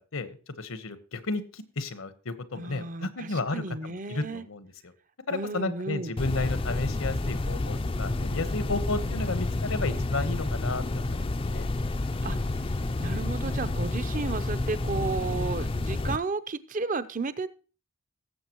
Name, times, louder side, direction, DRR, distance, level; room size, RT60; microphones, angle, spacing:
voice 1, 0.1-4.9 5.3-11.7, left 3 dB, 80° left, 12 dB, 1.1 m, -33 dB
voice 2, 2.6-4.4 5.3-6.1 12.2-12.4 13.0-17.5, right 3 dB, 35° right, 14 dB, 0.6 m, -33 dB
sound 1, 6.2-16.2, left 2 dB, 25° left, 0.4 m, -29 dB
18.0 x 7.7 x 3.0 m, 0.36 s
head